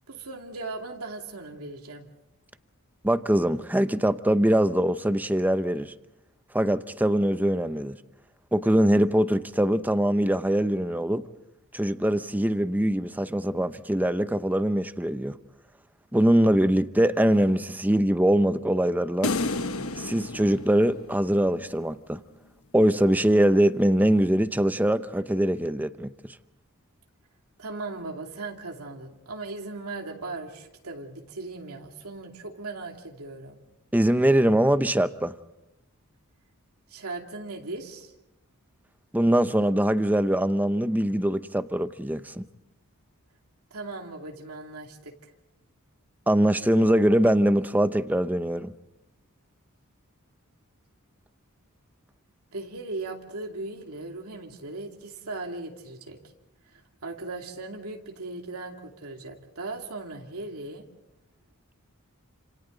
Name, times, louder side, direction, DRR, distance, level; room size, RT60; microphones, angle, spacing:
voice 1, 0.1-2.1 27.6-33.6 36.9-38.1 43.7-45.1 52.5-56.2 56.7-60.8, right 3 dB, 90° right, 2.7 m, -38 dB
voice 2, 3.0-5.9 6.5-8.0 8.5-11.3 11.7-15.4 16.1-19.3 20.0-22.2 22.7-26.1 33.9-35.3 39.1-42.4 46.3-48.7, right 1 dB, 10° right, 0.7 m, -23 dB
sound 1, 19.2-21.6, left 3 dB, 70° left, 1.1 m, -31 dB
29.5 x 27.0 x 4.0 m
head